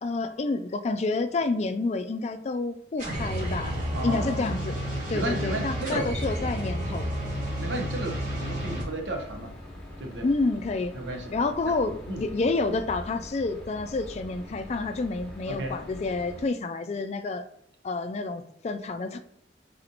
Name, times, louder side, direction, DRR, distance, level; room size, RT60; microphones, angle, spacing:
voice 1, 0.0-3.8 4.0-4.8 5.1-7.1 10.2-10.9 11.3-17.4 17.8-19.2, left 3 dB, 40° left, 9 dB, 0.3 m, -29 dB
sound 1, 3.0-8.8, equal, 45° right, 1.4 m, -31 dB
voice 2, 3.9-4.6 5.1-6.1 6.9-7.1 7.6-9.6 10.0-10.3 10.9-11.4 11.6-11.7 12.1-12.2 15.5-15.8, right 1 dB, 90° right, 4 dB, 0.8 m, -33 dB
sound 2, 5.9-16.5, left 1 dB, 5° left, 1.1 m, -44 dB
4.1 x 2.9 x 3.9 m, 0.70 s
head